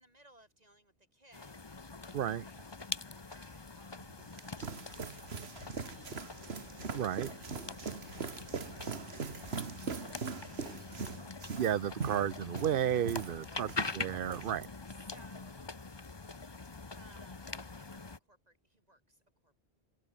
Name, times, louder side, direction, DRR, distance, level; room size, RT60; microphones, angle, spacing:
voice 1, 0.0-4.0 4.3-6.2 7.2-11.1 13.5-13.9 15.0-15.8 17.0-19.6, right 1 dB, 40° right, 6.2 m, -63 dB
sound 1, 1.3-18.2, left 3 dB, 25° left, 1.0 m, -44 dB
voice 2, 2.1-2.4 6.9-7.3 11.5-13.7 14.0-14.7, right 10 dB, 60° right, 0.8 m, -32 dB
sound 2, 4.0-13.9 14.2-14.7, right 5 dB, 80° right, 1.8 m, -41 dB
open air
omnidirectional pair, 1.0 m